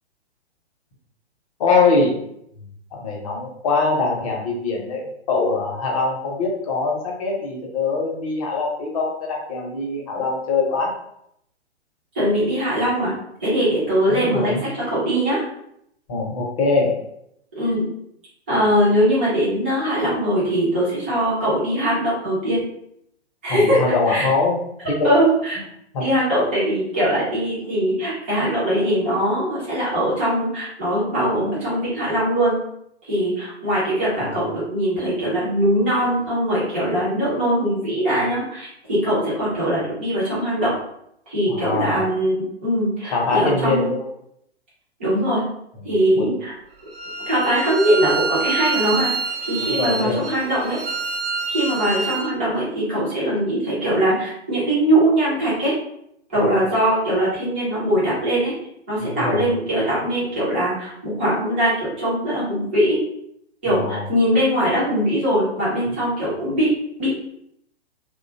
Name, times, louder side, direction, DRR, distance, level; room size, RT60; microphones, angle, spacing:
voice 1, 1.6-2.2 2.9-10.9 14.1-14.6 16.1-17.0 23.5-24.6 24.9-25.1 25.9-26.0 34.2-34.4 41.5-42.0 43.0-44.0 46.1-46.2 49.6-50.2 59.0-59.5 63.7-64.1, left 3 dB, 30° left, -1 dB, 0.6 m, -23 dB
voice 2, 12.1-13.1 13.4-15.4 17.6-17.9 18.5-22.6 23.4-23.8 24.1-24.3 25.0-25.6 26.0-32.6 33.0-40.7 41.3-43.9 45.0-45.4 45.8-46.5 47.3-49.1 49.5-50.8 51.5-55.7 56.3-58.5 58.9-63.0 63.6-66.7 67.0-67.1, equal, 10° right, -9 dB, 0.3 m, -21 dB
Bowed string instrument, 46.9-52.3, right 4 dB, 55° right, 0.7 m, -27 dB
2.5 x 2.1 x 2.6 m, 0.74 s
figure-of-eight pair, 120°, 34 cm